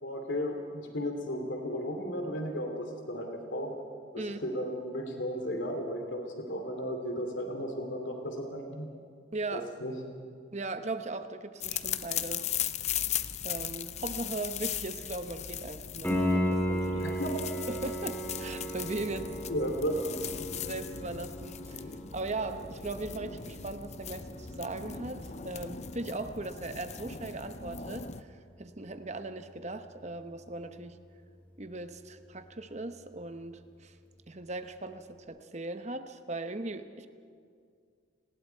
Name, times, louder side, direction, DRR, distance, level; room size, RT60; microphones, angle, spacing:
voice 1, 0.0-3.7 4.1-8.9 9.5-9.9 17.0-17.4 19.5-20.2, equal, 70° left, 3 dB, 2.7 m, -34 dB
voice 2, 9.3-9.7 10.5-13.0 13.4-17.2 17.7-19.3 20.6-28.3 28.6-31.0 31.6-33.9 34.3-37.1, right 2 dB, 35° right, 9 dB, 1.0 m, -38 dB
sound 1, 11.6-28.2, left 9 dB, 35° left, 0.6 m, -38 dB
Piano, 16.0-26.7 30.0-30.1, equal, 10° left, 3.7 m, -36 dB
30.0 x 20.0 x 4.6 m, 2.2 s
head